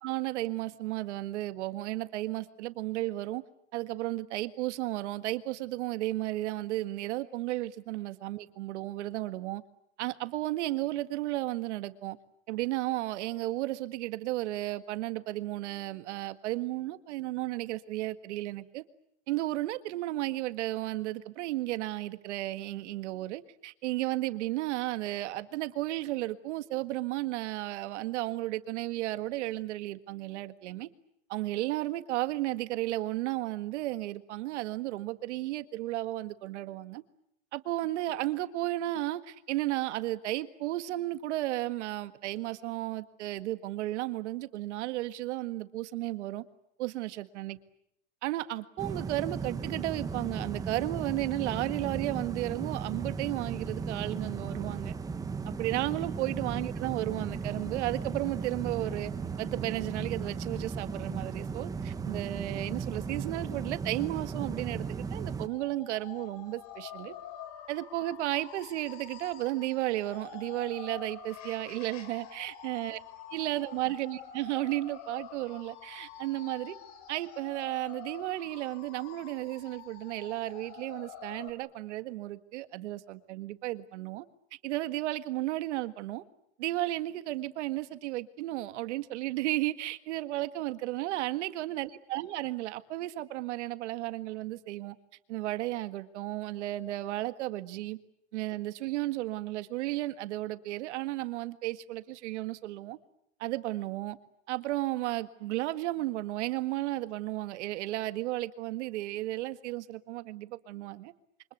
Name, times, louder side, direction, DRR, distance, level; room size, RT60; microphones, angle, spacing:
voice 1, 0.0-3.4 3.7-9.6 10.0-12.2 12.5-18.8 19.3-30.9 31.3-37.0 37.5-46.4 46.8-47.6 48.2-54.9 55.5-59.1 59.4-67.1 67.7-73.0 73.3-76.8 77.1-84.3 84.6-86.2 86.6-95.0 95.3-98.0 98.3-103.0 103.4-104.2 104.5-111.1, right 16 dB, 85° right, 1.8 m, -34 dB
sound 1, 48.8-65.5, right 5 dB, 10° right, 1.0 m, -36 dB
sound 2, 65.4-81.5, left 9 dB, 50° left, 3.6 m, -47 dB
28.5 x 25.0 x 8.1 m
supercardioid pair, 160°, 34 cm